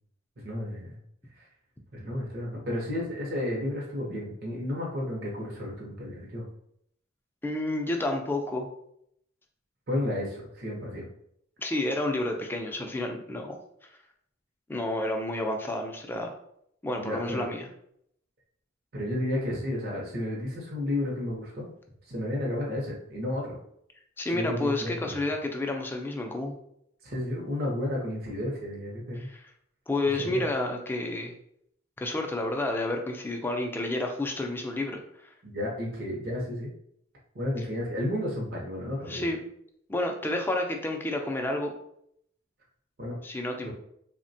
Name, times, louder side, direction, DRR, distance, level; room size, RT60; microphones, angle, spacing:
voice 1, 0.4-1.0 1.9-6.4 9.9-11.1 17.0-17.5 18.9-21.7 22.1-23.6 24.3-25.2 27.0-29.3 30.2-30.4 35.4-36.7 37.3-39.3 43.0-43.2 43.6-43.7, left 1 dB, 50° right, -3 dB, 0.7 m, -32 dB
voice 2, 7.4-8.7 11.6-13.6 14.7-16.3 16.8-17.7 24.2-26.6 29.1-29.5 29.9-31.3 32.0-35.0 37.6-37.7 39.1-39.4 39.9-41.7 43.2-43.7, left 2 dB, 10° left, 3 dB, 0.3 m, -30 dB
3.3 x 2.1 x 2.6 m, 0.72 s
head